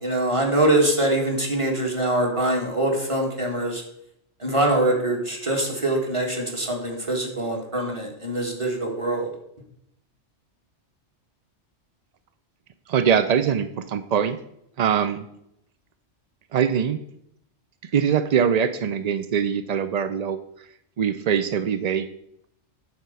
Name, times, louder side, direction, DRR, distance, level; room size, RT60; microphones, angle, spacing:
voice 1, 0.0-3.8 4.4-9.3, right 1 dB, 25° right, 0 dB, 1.9 m, -23 dB
voice 2, 12.9-14.4 14.8-15.3 16.5-17.0 17.9-20.4 21.0-22.1, right 7 dB, 65° right, 11 dB, 0.4 m, -22 dB
9.6 x 4.4 x 6.8 m, 0.75 s
omnidirectional pair, 1.2 m